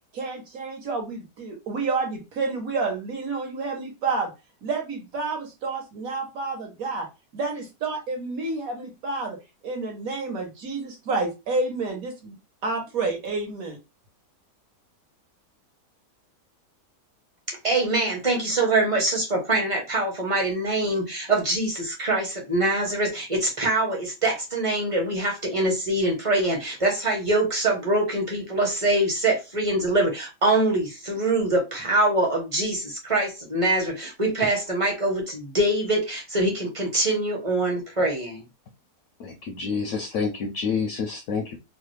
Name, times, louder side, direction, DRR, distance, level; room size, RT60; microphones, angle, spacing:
voice 1, 0.1-4.3 4.6-7.1 7.3-9.4 9.6-12.4 12.6-13.8, right 3 dB, 60° right, 2 dB, 1.3 m, -29 dB
voice 2, 17.5-38.4, right 2 dB, 25° right, 0 dB, 0.8 m, -24 dB
voice 3, 39.2-41.6, left 5 dB, 70° left, 6 dB, 0.8 m, -28 dB
3.1 x 2.3 x 3.2 m, 0.26 s
omnidirectional pair, 1.8 m